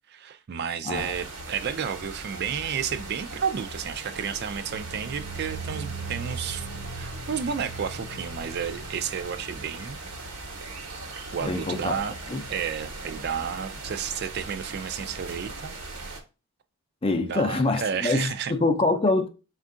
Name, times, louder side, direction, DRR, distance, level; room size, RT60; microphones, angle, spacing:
voice 1, 0.1-6.7 7.0-10.0 11.3-12.1 12.5-15.8 17.2-18.5, right 7 dB, 50° right, 0.3 m, -31 dB
sound 1, 0.9-16.2, right 2 dB, 90° right, 1.0 m, -39 dB
sound 2, 4.6-11.5 11.8-12.2 12.6-12.7, right 4 dB, 65° left, 0.7 m, -41 dB
voice 2, 11.4-12.0 12.3-12.4 17.0-19.3, left 2 dB, 25° left, 0.5 m, -25 dB
4.4 x 2.5 x 3.7 m
head